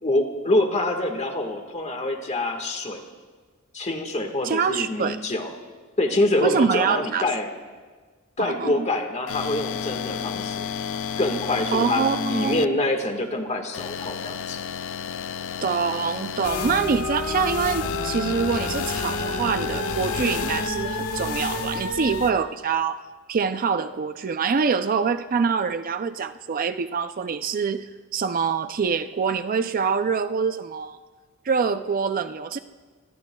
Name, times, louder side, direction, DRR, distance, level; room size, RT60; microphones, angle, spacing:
voice 1, 0.0-3.0 3.7-5.5 6.0-7.5 8.4-10.7 11.2-14.6, left 2 dB, 30° left, 4 dB, 1.6 m, -25 dB
voice 2, 4.4-5.2 6.4-7.3 8.4-8.9 11.7-12.8 15.6-23.0 23.3-31.0 31.4-32.6, right 5 dB, 40° right, 10 dB, 0.4 m, -25 dB
sound 1, 9.3-12.7 13.7-16.5 17.8-20.7, left 7 dB, 60° left, 0.5 m, -32 dB
sound 2, 16.4-22.3, left 3 dB, 80° left, 1.5 m, -29 dB
26.0 x 21.0 x 2.3 m, 1.4 s
head